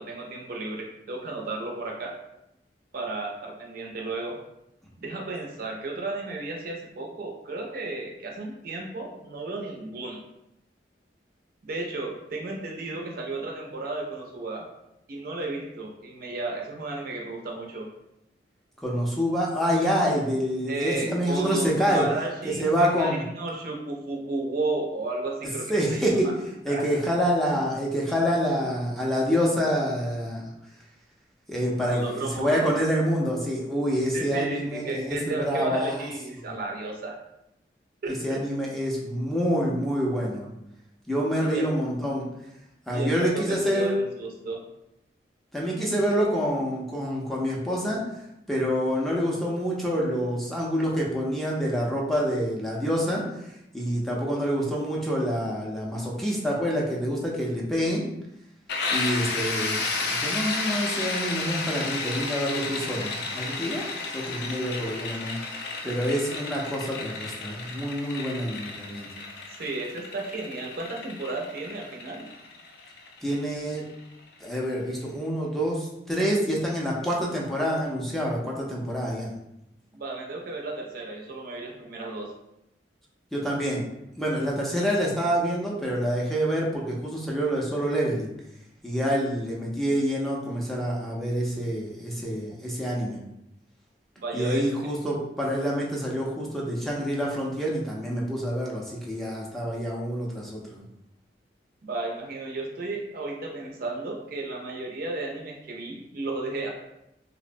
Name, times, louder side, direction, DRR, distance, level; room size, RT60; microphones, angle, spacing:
voice 1, 0.0-2.2 2.9-4.4 5.0-10.2 11.6-14.7 15.1-17.9 20.7-26.3 26.7-27.1 31.8-32.7 34.1-37.2 38.0-38.4 41.4-41.7 42.9-44.6 69.6-72.3 79.9-82.3 94.2-94.9 101.8-106.7, right 2 dB, 55° right, 1 dB, 0.5 m, -33 dB
voice 2, 18.8-22.0 22.6-23.2 25.7-26.3 26.6-30.5 31.5-32.0 32.3-36.0 36.4-36.5 38.2-40.5 41.1-42.3 42.9-43.9 45.5-48.0 48.5-53.2 53.7-58.0 58.9-59.8 60.2-63.8 64.1-65.3 65.8-69.1 73.2-73.8 74.4-79.3 83.3-83.8 84.2-88.3 88.8-93.2 94.3-100.8, equal, ahead, -4 dB, 0.4 m, -27 dB
sound 1, 58.7-74.3, left 3 dB, 65° left, 0.4 m, -32 dB
2.8 x 2.0 x 2.5 m, 0.84 s
head